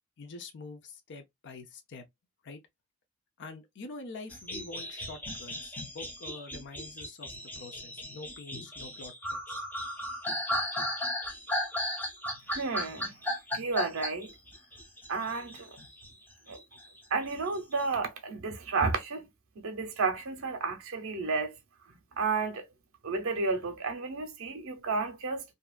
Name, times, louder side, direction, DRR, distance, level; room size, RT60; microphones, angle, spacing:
voice 1, 0.2-2.0 2.4-2.6 3.4-7.3 7.6-9.7, left 3 dB, 60° left, 0.6 m, -46 dB
sound 1, 4.3-16.1 16.5-17.8, left 1 dB, 10° left, 0.6 m, -36 dB
voice 2, 12.5-13.1 13.5-14.3 15.1-15.7 16.5-16.6 17.1-19.3 19.6-21.5 22.2-22.6 23.0-25.4, right 4 dB, 70° right, 0.6 m, -32 dB
2.7 x 2.3 x 2.3 m
head